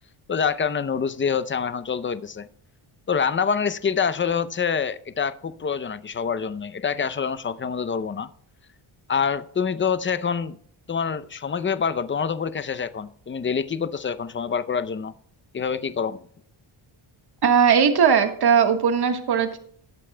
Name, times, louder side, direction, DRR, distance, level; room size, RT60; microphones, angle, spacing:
voice 1, 0.3-2.5 3.1-8.3 9.1-10.6 10.9-15.1 15.5-16.2, left 6 dB, 25° left, 0.7 m, -26 dB
voice 2, 17.4-19.6, right 7 dB, 50° right, 1.6 m, -19 dB
20.0 x 8.4 x 2.3 m
cardioid pair, 100°, 49 cm